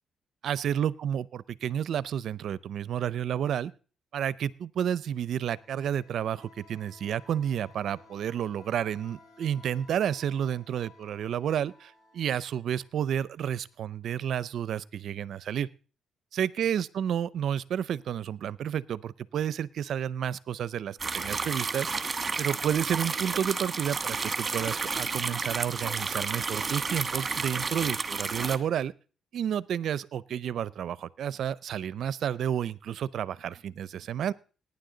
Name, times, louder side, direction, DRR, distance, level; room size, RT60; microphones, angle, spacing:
voice 1, 0.4-3.7 4.1-15.7 16.3-21.9 22.4-28.9 29.3-34.3, right 9 dB, 65° right, 20 dB, 0.5 m, -31 dB
sound 1, 5.2-13.8, left 4 dB, 70° left, 6.4 m, -57 dB
sound 2, 21.0-28.6, right 4 dB, 30° right, 1.3 m, -31 dB
18.0 x 9.8 x 3.9 m, 0.38 s
cardioid pair, 90°, 0 cm